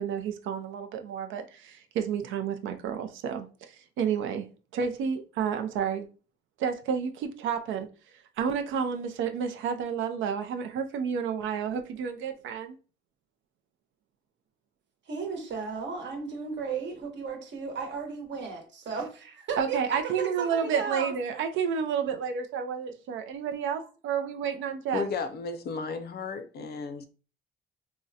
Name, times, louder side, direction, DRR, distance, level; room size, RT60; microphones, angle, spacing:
voice 1, 0.0-4.5 4.7-6.1 6.6-7.9 8.4-12.8 19.6-25.1, right 7 dB, 80° right, 0.4 m, -30 dB
voice 2, 15.1-21.1, right 5 dB, 65° right, 1.0 m, -34 dB
voice 3, 24.9-27.1, left 4 dB, 55° left, 0.5 m, -33 dB
3.6 x 2.1 x 2.7 m
cardioid pair, 90°, 20 cm